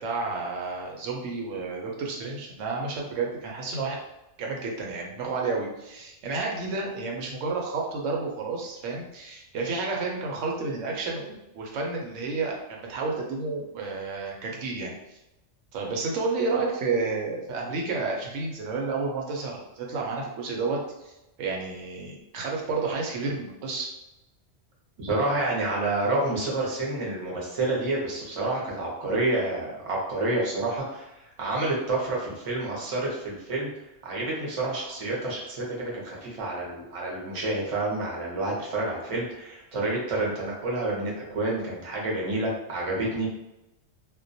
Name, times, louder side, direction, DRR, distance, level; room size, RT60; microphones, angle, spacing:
voice 1, 0.0-4.0 4.4-15.2 15.7-21.1 21.4-23.9, right 3 dB, 85° right, 0 dB, 0.9 m, -31 dB
voice 2, 25.0-33.7 34.0-43.3, right 2 dB, 35° right, -3 dB, 0.6 m, -29 dB
2.2 x 2.1 x 2.6 m, 0.92 s
omnidirectional pair, 1.2 m